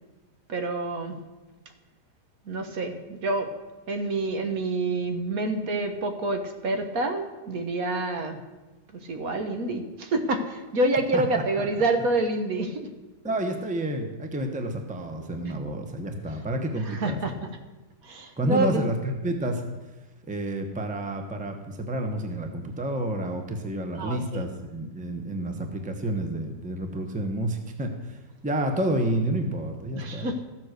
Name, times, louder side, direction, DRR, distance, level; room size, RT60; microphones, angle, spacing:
voice 1, 0.5-1.2 2.5-3.5 3.9-8.4 8.9-12.9 15.4-15.5 16.8-17.3 18.0-18.9 23.9-24.5 30.0-30.4, right 2 dB, 65° right, 5 dB, 1.6 m, -27 dB
voice 2, 11.1-11.7 13.2-17.2 18.4-19.6 20.3-30.3, right 1 dB, 5° right, 5 dB, 0.9 m, -29 dB
14.0 x 7.6 x 6.6 m, 1.1 s
omnidirectional pair, 1.7 m